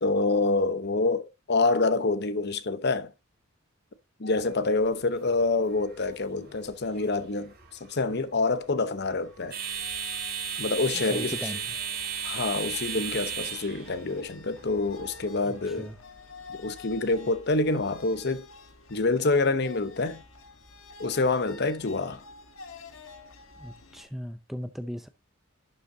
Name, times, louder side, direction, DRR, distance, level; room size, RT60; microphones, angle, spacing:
voice 1, 0.0-3.1 4.2-7.5 7.8-9.6 10.6-11.4 12.2-15.9 16.5-18.5 18.9-20.2 21.0-22.2, left 3 dB, 50° left, 0.8 m, -27 dB
sound 1, 4.3-15.7, right 7 dB, 50° right, 3.0 m, -37 dB
sound 2, 9.2-24.0, left 3 dB, 65° left, 1.5 m, -49 dB
voice 2, 10.9-11.6 15.4-16.0 23.6-25.1, equal, ahead, 0.5 m, -38 dB
11.5 x 6.8 x 2.7 m
head